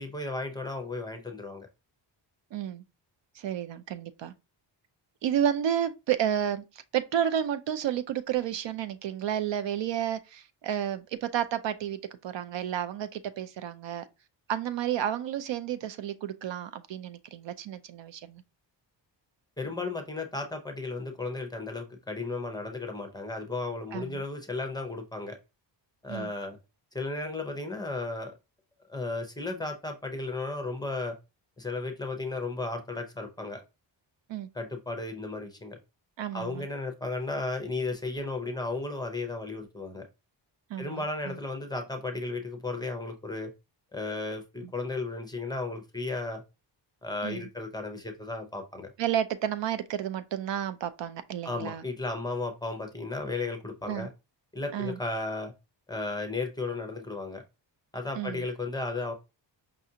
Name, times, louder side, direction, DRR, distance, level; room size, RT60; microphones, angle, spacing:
voice 1, 0.0-1.7 19.6-25.4 26.0-26.6 26.9-28.3 28.9-31.2 31.6-33.6 34.5-35.8 36.3-40.1 40.8-43.5 43.9-46.4 47.0-48.9 51.4-54.1 54.5-55.5 55.9-57.4 57.9-59.1, left 3 dB, 10° left, 0.6 m, -34 dB
voice 2, 2.5-2.8 3.4-4.3 5.2-14.1 14.5-18.4 23.9-24.2 26.1-26.3 34.3-34.5 36.2-36.7 40.7-41.4 47.2-47.5 49.0-51.8 53.9-54.1 54.7-55.0 58.1-58.4, right 10 dB, 70° right, 0.5 m, -31 dB
5.4 x 2.4 x 2.7 m
wide cardioid pair, 135°, 45 cm